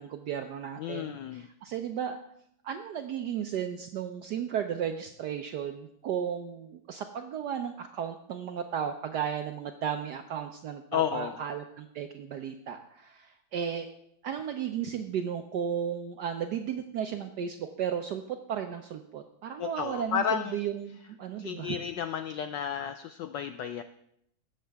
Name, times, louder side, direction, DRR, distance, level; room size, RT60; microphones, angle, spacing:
voice 1, 0.0-2.2 2.6-13.9 14.2-21.8, right 8 dB, 75° right, 6 dB, 0.9 m, -34 dB
voice 2, 0.8-1.5 10.9-11.4 19.6-20.6 21.4-23.8, left 9 dB, 80° left, 9 dB, 1.0 m, -32 dB
20.0 x 7.5 x 3.4 m, 0.74 s
omnidirectional pair, 2.4 m